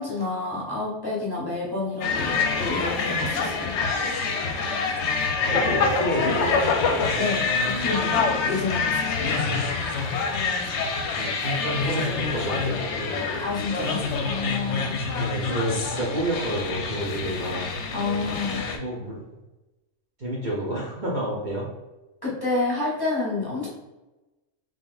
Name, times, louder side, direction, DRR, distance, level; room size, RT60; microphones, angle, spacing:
voice 1, 0.0-3.7 7.0-9.4 13.4-15.0 17.9-18.6 22.2-23.7, left 3 dB, 20° left, -6 dB, 0.9 m, -29 dB
sound 1, 2.0-18.8, left 4 dB, 70° left, 0.8 m, -26 dB
voice 2, 5.4-7.3 9.2-9.8 11.1-13.5 15.1-17.7 18.7-19.2 20.2-21.6, right 1 dB, 45° right, -5 dB, 0.8 m, -30 dB
3.9 x 3.2 x 2.5 m, 1.1 s
omnidirectional pair, 1.3 m